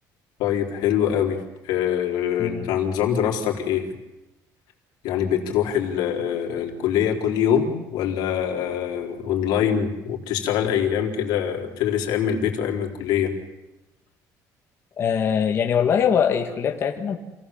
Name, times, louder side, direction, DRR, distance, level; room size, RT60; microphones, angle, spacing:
voice 1, 0.4-3.9 5.0-13.3, left 9 dB, 85° left, 0 dB, 4.1 m, -24 dB
voice 2, 15.0-17.2, left 7 dB, 35° left, 2 dB, 1.9 m, -22 dB
28.5 x 18.0 x 7.3 m, 1.0 s
cardioid pair, 155°, 7 cm